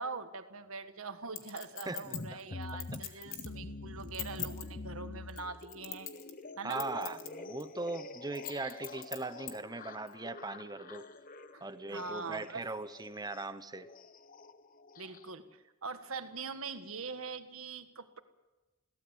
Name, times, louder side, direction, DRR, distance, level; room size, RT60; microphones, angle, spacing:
voice 1, 0.0-6.1 6.6-6.8 11.5-12.7 15.0-18.2, right 4 dB, 75° right, 9 dB, 1.7 m, -43 dB
Chink clink, 1.4-3.6 4.0-4.7 5.3-6.4 6.7-7.3 7.6-7.7 8.4-9.5 10.1-10.2, left 11 dB, 65° left, 2.4 m, -41 dB
voice 2, 1.9-2.6 6.6-11.1 11.6-13.9, right 2 dB, 20° right, 12 dB, 1.0 m, -40 dB
sound 1, 2.0-15.3, left 3 dB, 40° left, 0.9 m, -46 dB
22.5 x 17.5 x 8.1 m, 1.1 s
head